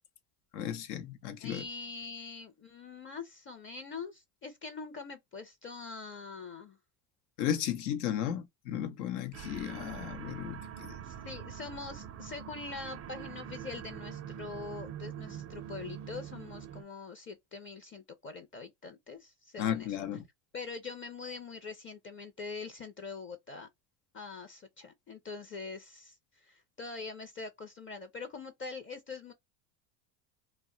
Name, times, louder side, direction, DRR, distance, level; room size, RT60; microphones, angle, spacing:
voice 1, 0.5-1.6 7.4-10.9 19.6-20.2, left 10 dB, 80° left, 0.8 m, -34 dB
voice 2, 1.4-6.8 11.0-20.1 20.5-23.7 24.1-29.3, left 4 dB, 25° left, 0.5 m, -44 dB
sound 1, 9.3-16.8, right 9 dB, 35° right, 0.4 m, -44 dB
2.2 x 2.1 x 3.7 m
supercardioid pair, 95°, 48 cm